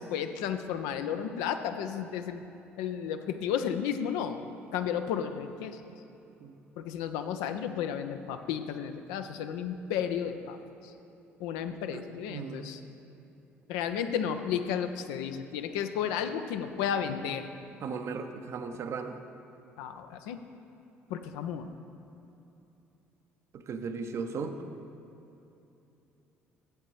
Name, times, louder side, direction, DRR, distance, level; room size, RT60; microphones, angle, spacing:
voice 1, 0.0-2.5 2.8-4.5 4.7-5.8 6.8-10.9 11.4-12.8 13.7-17.7 19.8-20.4 21.1-21.7, left 8 dB, 65° left, 8 dB, 0.4 m, -33 dB
voice 2, 12.3-12.8 17.8-19.2 23.5-24.5, right 5 dB, 45° right, 7 dB, 0.6 m, -36 dB
12.5 x 8.3 x 3.1 m, 2.9 s
figure-of-eight pair, 50°, 7 cm